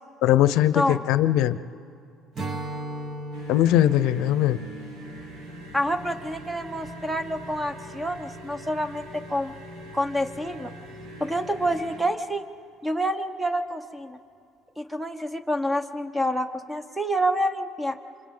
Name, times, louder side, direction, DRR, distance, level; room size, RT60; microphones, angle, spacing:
voice 1, 0.2-1.6 3.5-4.6, left 13 dB, 75° left, 14 dB, 0.6 m, -20 dB
Strum, 2.3-7.8, right 1 dB, 35° right, 1.4 m, -38 dB
sound 1, 3.3-12.0, right 1 dB, 85° right, 4.3 m, -42 dB
voice 2, 5.7-9.6 9.9-10.7 11.2-12.4 12.8-14.2 14.8-18.0, equal, 5° right, 9 dB, 1.2 m, -27 dB
29.0 x 25.5 x 3.9 m, 2.5 s
cardioid pair, 105°, 0 cm